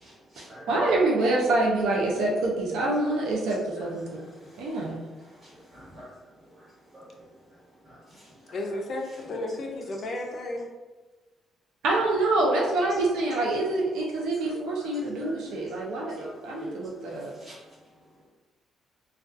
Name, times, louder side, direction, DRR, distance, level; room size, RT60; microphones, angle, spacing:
voice 1, 0.0-0.7 5.4-6.1 6.9-7.0 7.9-8.0 9.2-9.3 16.2-16.3 16.6-16.7 17.4-17.5, equal, 40° right, -8 dB, 1.4 m, -47 dB
voice 2, 0.7-4.0 4.6-5.0 11.8-17.3, right 2 dB, 90° right, -2 dB, 0.4 m, -26 dB
voice 3, 8.5-10.7, left 2 dB, 50° left, 1 dB, 0.4 m, -33 dB
2.3 x 2.2 x 2.5 m, 1.2 s
cardioid pair, 90°, 0 cm